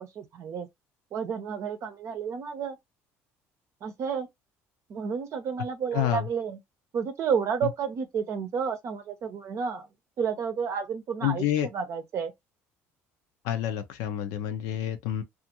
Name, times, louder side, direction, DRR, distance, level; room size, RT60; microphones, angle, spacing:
voice 1, 0.2-0.7 1.1-2.8 3.8-4.3 4.9-6.6 6.9-9.9 10.2-11.5 11.7-12.3, right 6 dB, 50° right, 0.6 m, -31 dB
voice 2, 5.9-6.2 11.2-11.7 13.4-15.2, left 11 dB, 80° left, 0.6 m, -28 dB
2.5 x 2.5 x 2.8 m
supercardioid pair, 95°, 6 cm